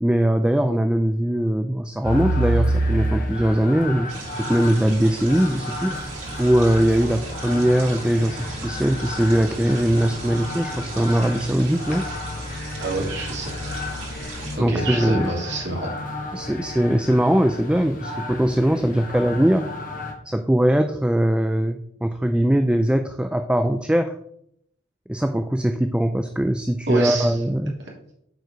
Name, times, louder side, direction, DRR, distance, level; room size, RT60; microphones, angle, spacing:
voice 1, 0.0-6.0 6.4-12.1 14.6-15.3 16.3-19.7 20.3-24.1 25.1-27.8, right 1 dB, 5° right, 7 dB, 0.3 m, -21 dB
sound 1, 2.0-20.1, equal, 40° left, 1.6 m, -30 dB
sound 2, 4.1-14.6, right 3 dB, 85° right, 3.8 m, -38 dB
voice 2, 12.8-13.8 14.5-15.9 26.9-27.4, right 2 dB, 60° right, -2 dB, 2.7 m, -27 dB
7.9 x 4.7 x 6.5 m, 0.72 s
head